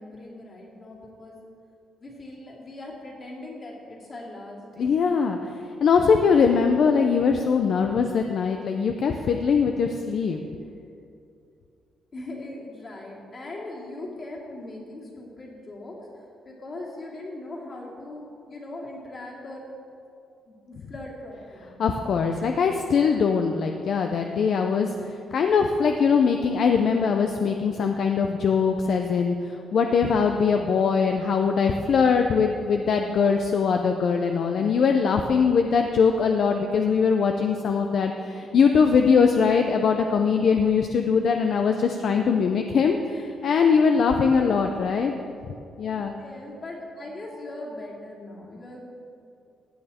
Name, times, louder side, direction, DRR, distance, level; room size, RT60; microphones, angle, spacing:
voice 1, 0.0-1.4 2.0-5.0 12.1-19.7 20.5-21.8 44.2-44.7 46.2-48.9, left 2 dB, 35° left, -3 dB, 2.7 m, -40 dB
voice 2, 4.8-10.4 21.8-45.1 45.8-46.1, left 5 dB, 55° left, 4 dB, 0.6 m, -22 dB
16.0 x 9.1 x 4.3 m, 2.6 s
cardioid pair, 140°, 0 cm